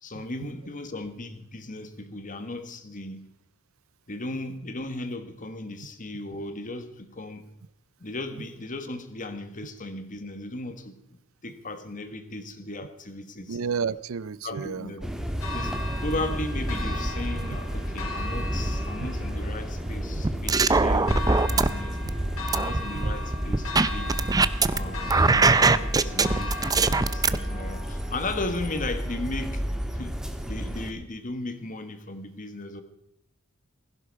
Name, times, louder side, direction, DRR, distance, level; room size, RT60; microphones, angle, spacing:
voice 1, 0.0-3.3 4.1-7.5 8.0-11.0 11.4-13.6 14.4-15.1 15.5-22.0 22.5-24.1 24.6-30.2 30.4-32.8, left 2 dB, 40° left, 1.5 m, -36 dB
voice 2, 13.5-14.9 20.2-20.3, right 6 dB, 70° right, 0.5 m, -31 dB
sound 1, 15.0-30.9, equal, 5° right, 1.5 m, -31 dB
Church bell, 15.4-29.4, left 2 dB, 80° left, 3.4 m, -39 dB
sound 2, 20.2-21.7 22.1-24.8 25.1-27.4, right 3 dB, 20° right, 0.5 m, -21 dB
16.0 x 16.0 x 4.7 m
head